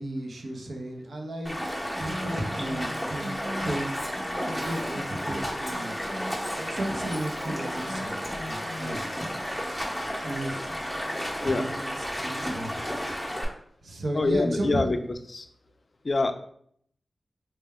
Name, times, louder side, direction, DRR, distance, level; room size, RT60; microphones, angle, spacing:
voice 1, 0.0-1.5 2.0-3.9 4.5-5.9 6.6-9.0 10.2-10.7 11.4-12.8 13.8-14.9, right 1 dB, 75° right, 1 dB, 0.6 m, -34 dB
Stream, 1.4-13.4, equal, 10° right, 0.9 m, -32 dB
Female speech woman speaking, 1.9-9.0, equal, 15° left, 0.9 m, -40 dB
voice 2, 14.1-15.0 15.3-15.4 16.0-16.3, left 3 dB, 45° left, 7 dB, 0.4 m, -24 dB
4.3 x 2.2 x 3.5 m, 0.66 s
wide cardioid pair, 105°, 0 cm